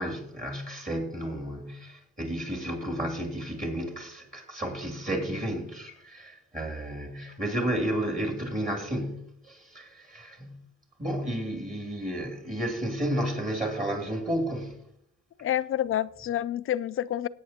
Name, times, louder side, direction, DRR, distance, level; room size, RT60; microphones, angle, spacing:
voice 1, 0.0-10.6 11.0-14.8, right 1 dB, 25° right, 2.6 m, -32 dB
voice 2, 15.4-17.3, left 11 dB, 45° left, 0.4 m, -28 dB
18.0 x 8.5 x 2.8 m
cardioid pair, 90°, 30 cm